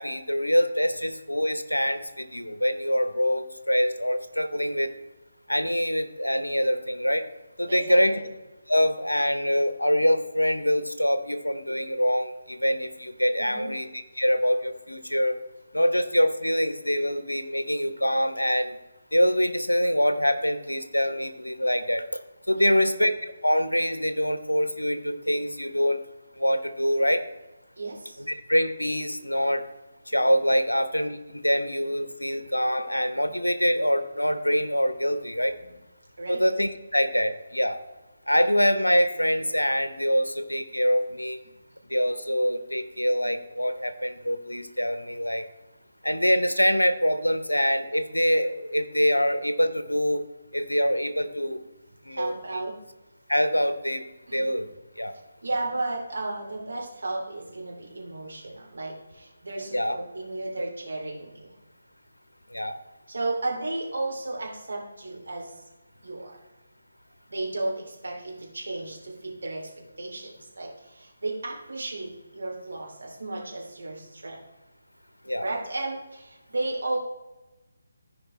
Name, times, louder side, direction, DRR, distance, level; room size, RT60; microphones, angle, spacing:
voice 1, 0.0-4.9 5.5-7.3 7.6-8.2 8.7-13.9 14.1-15.4 15.7-18.8 19.1-22.2 22.5-26.0 26.3-27.2 28.2-29.6 30.1-35.5 36.3-37.8 38.3-41.4 41.9-45.5 46.0-50.2 50.5-51.6 52.0-52.6 53.3-54.1 54.3-54.7 55.0-55.1 59.7-60.0 62.5-62.8 75.2-75.5, equal, 85° left, 10 dB, 0.9 m, -25 dB
voice 2, 7.7-8.3 13.4-13.8 22.5-23.1 27.8-28.2 32.2-32.4 35.5-35.8 36.2-36.4 42.0-42.1 52.1-52.8 54.3-54.4 55.4-61.5 63.1-65.6 66.0-66.3 67.3-69.7 70.0-74.4 75.4-77.0, right 2 dB, 60° right, -2 dB, 2.8 m, -34 dB
14.5 x 5.1 x 3.1 m, 1.1 s
figure-of-eight pair, 150°, 0 cm